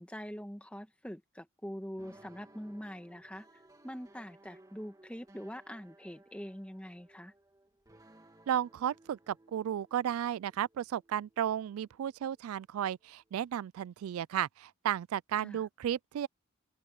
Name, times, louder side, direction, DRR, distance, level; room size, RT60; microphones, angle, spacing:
voice 1, 0.0-7.3 15.4-15.6, equal, 5° left, 1.4 m, -44 dB
sound 1, 2.0-13.4, right 1 dB, 15° right, 1.7 m, -61 dB
voice 2, 8.5-16.3, right 10 dB, 85° right, 0.3 m, -34 dB
head